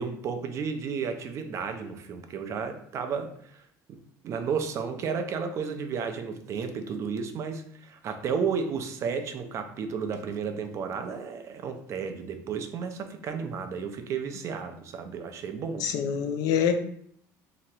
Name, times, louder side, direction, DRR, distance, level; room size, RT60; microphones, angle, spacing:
voice 1, 0.0-3.6 3.9-15.9, right 6 dB, 40° right, 7 dB, 0.5 m, -33 dB
voice 2, 15.8-16.8, left 8 dB, 60° left, 7 dB, 0.4 m, -25 dB
2.9 x 2.8 x 4.5 m, 0.63 s
cardioid pair, 140°, 7 cm